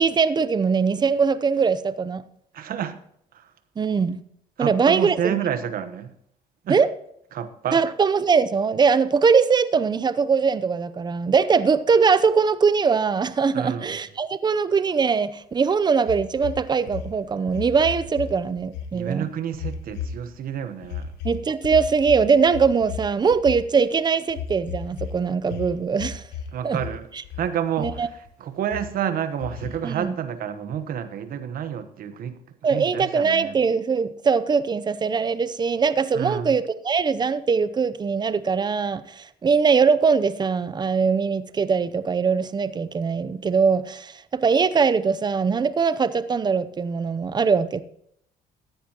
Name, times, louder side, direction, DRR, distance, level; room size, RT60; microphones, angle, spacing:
voice 1, 0.0-2.2 3.8-4.2 4.6-5.4 6.7-6.9 7.7-19.3 21.2-26.2 26.6-26.8 27.8-28.1 29.8-30.1 32.6-47.8, right 5 dB, 25° right, 0.6 m, -21 dB
voice 2, 2.5-3.0 3.3-3.5 4.6-6.1 6.6-6.8 7.3-7.9 13.5-13.9 18.9-21.1 26.5-27.1 27.4-28.1 28.4-32.4 32.7-33.5 36.1-36.5, right 9 dB, 60° right, 1.1 m, -29 dB
sound 1, 16.1-18.3 18.6-18.9 19.5-20.4 20.8-23.8 24.3-25.2 25.4-26.5 26.7-27.5 27.8-28.3 28.7-28.8 29.4-30.0, left 7 dB, 85° left, 1.2 m, -34 dB
14.5 x 10.0 x 3.0 m
cardioid pair, 110°, 17 cm